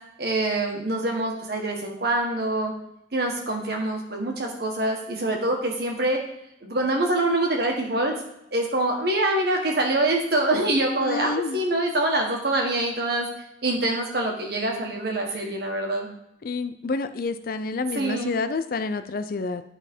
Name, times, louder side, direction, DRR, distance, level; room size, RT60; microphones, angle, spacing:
voice 1, 0.2-2.7 3.1-6.2 6.6-8.1 8.5-13.3 13.6-16.1 17.9-18.4, right 2 dB, 60° right, 1 dB, 1.6 m, -25 dB
voice 2, 11.0-11.6 16.4-19.6, left 4 dB, 55° left, 10 dB, 0.4 m, -28 dB
11.0 x 4.0 x 4.5 m, 0.82 s
head